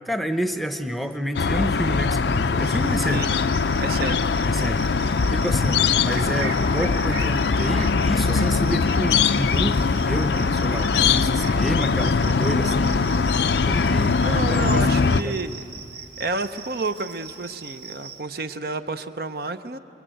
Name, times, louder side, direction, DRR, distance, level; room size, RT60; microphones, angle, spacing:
voice 1, 0.0-3.3 4.4-4.8 5.3-13.1 13.7-15.4, equal, ahead, 9 dB, 0.8 m, -29 dB
sound 1, 1.3-15.2, left 4 dB, 75° left, 0.5 m, -21 dB
Cricket, 2.6-18.2, right 5 dB, 85° right, 1.9 m, -41 dB
voice 2, 3.8-4.2 14.2-15.6 16.2-19.8, right 3 dB, 55° right, 10 dB, 0.7 m, -30 dB
26.5 x 22.0 x 9.1 m, 3.0 s
head